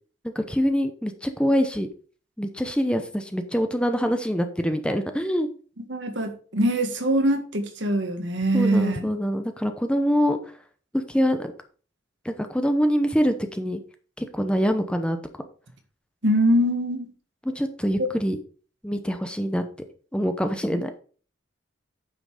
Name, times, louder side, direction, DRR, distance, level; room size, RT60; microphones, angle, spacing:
voice 1, 0.3-1.9 2.4-5.5 8.5-10.4 10.9-11.5 12.2-13.8 14.2-15.2 17.4-18.4 18.8-19.6 20.1-20.9, equal, 5° left, 0.8 m, -24 dB
voice 2, 5.8-9.1 16.2-17.1 18.0-18.1 20.7-20.8, right 1 dB, 70° right, 1.8 m, -23 dB
9.4 x 5.9 x 4.9 m
head